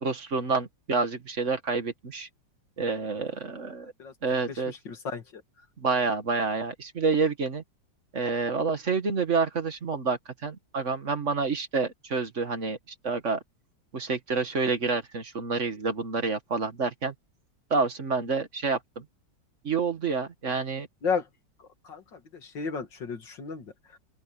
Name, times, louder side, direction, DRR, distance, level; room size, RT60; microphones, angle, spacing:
voice 1, 0.0-2.3 2.8-3.9 4.2-4.7 5.8-7.6 8.1-12.8 13.0-13.4 13.9-17.1 17.7-19.1 19.6-20.9, right 4 dB, 40° right, 1.8 m, -28 dB
voice 2, 4.5-5.4 21.0-21.3 21.6-24.0, left 5 dB, 70° left, 2.9 m, -34 dB
open air
omnidirectional pair, 2.0 m